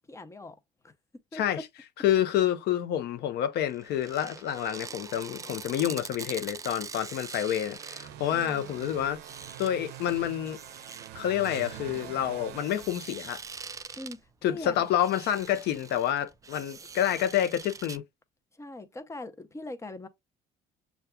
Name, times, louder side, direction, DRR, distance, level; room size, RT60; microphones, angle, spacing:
voice 1, 0.1-0.6 0.8-0.9 1.3-1.4 8.3-8.8 14.0-14.7 18.5-20.1, left 2 dB, 15° left, 0.7 m, -41 dB
voice 2, 1.3-1.6 2.0-9.2 9.6-10.6 11.1-13.4 14.4-18.0, left 11 dB, 75° left, 0.7 m, -28 dB
sound 1, 3.7-18.0, right 5 dB, 20° right, 0.3 m, -44 dB
sound 2, 6.8-13.7, right 11 dB, 80° right, 0.5 m, -45 dB
6.8 x 2.3 x 2.3 m
cardioid pair, 110°, 17 cm